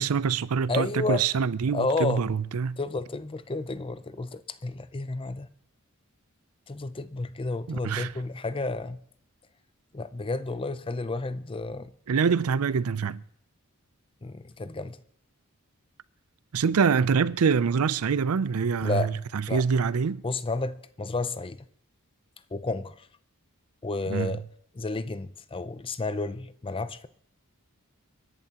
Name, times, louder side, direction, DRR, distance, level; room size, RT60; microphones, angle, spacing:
voice 1, 0.0-2.8 7.7-8.1 12.1-13.2 16.5-20.2 24.1-24.3, right 6 dB, 80° right, 0.5 m, -25 dB
voice 2, 0.7-1.2 1.7-2.2 2.8-5.5 6.7-9.0 9.9-11.9 14.2-15.0 18.8-19.1 19.5-19.6 20.2-21.6 22.5-23.1 23.8-24.4 24.7-27.1, left 3 dB, 25° left, 0.5 m, -31 dB
30.0 x 11.0 x 2.9 m
head